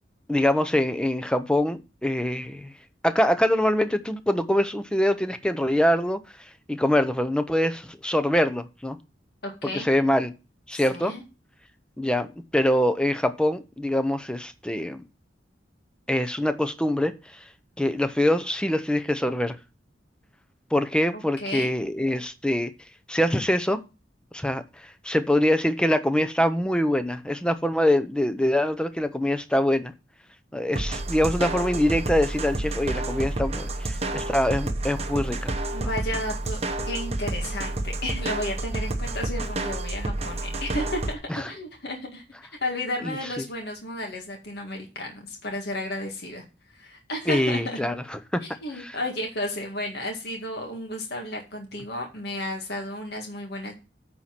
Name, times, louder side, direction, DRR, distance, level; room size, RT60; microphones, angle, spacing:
voice 1, 0.3-2.7 3.0-6.2 6.7-9.0 9.7-10.3 10.7-11.1 12.0-12.3 12.5-15.0 16.1-17.4 17.8-19.6 20.7-22.7 23.1-23.8 24.3-29.9 30.5-35.5 41.3-41.4 43.0-43.2 47.3-48.4 48.8-48.9, left 1 dB, 5° left, 0.7 m, -24 dB
voice 2, 9.4-9.9 10.7-11.2 21.1-21.7 35.7-36.6 36.9-42.2 42.6-46.4 46.7-47.8 48.4-53.7, left 1 dB, 60° left, 1.9 m, -33 dB
sound 1, 30.7-41.1, right 2 dB, 35° right, 1.0 m, -30 dB
9.3 x 4.3 x 5.9 m
head